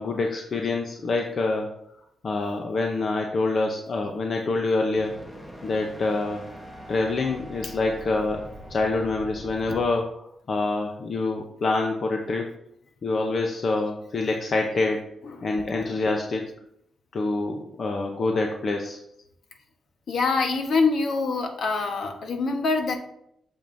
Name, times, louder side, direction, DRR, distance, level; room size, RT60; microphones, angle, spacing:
voice 1, 0.0-1.7 2.2-5.2 5.6-6.4 6.9-8.4 8.7-12.5 13.0-15.0 15.4-16.5 17.1-19.0, left 3 dB, 45° left, 2 dB, 0.7 m, -26 dB
sound 1, 4.9-9.9, equal, 10° left, 1.0 m, -42 dB
voice 2, 20.1-22.9, left 4 dB, 60° left, 4 dB, 1.2 m, -25 dB
8.9 x 7.2 x 2.7 m, 0.76 s
wide cardioid pair, 145°, 0 cm